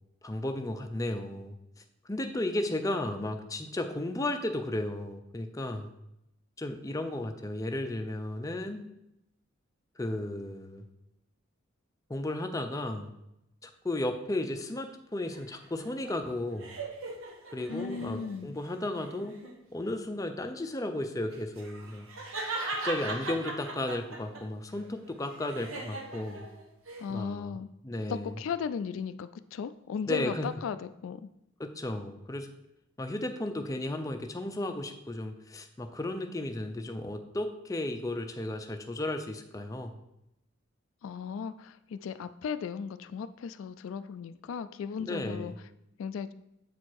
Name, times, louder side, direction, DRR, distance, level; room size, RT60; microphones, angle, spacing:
voice 1, 0.2-1.6 2.0-5.9 6.6-8.9 10.0-10.8 12.1-13.1 13.6-16.8 17.5-19.4 19.7-22.1 22.8-26.5 27.1-27.6 27.8-28.4 30.1-30.6 31.6-32.5 33.0-40.0 45.0-45.6, left 1 dB, 15° left, 5 dB, 0.5 m, -34 dB
sound 1, 15.3-18.4 18.9-19.6 21.3-24.4 24.8-27.0, right 2 dB, 80° right, 1.1 m, -39 dB
voice 2, 17.7-18.6 27.0-27.7 28.1-31.3 41.0-45.5 46.0-46.3, left 6 dB, 75° left, 11 dB, 0.3 m, -36 dB
7.6 x 4.3 x 4.7 m, 0.84 s
head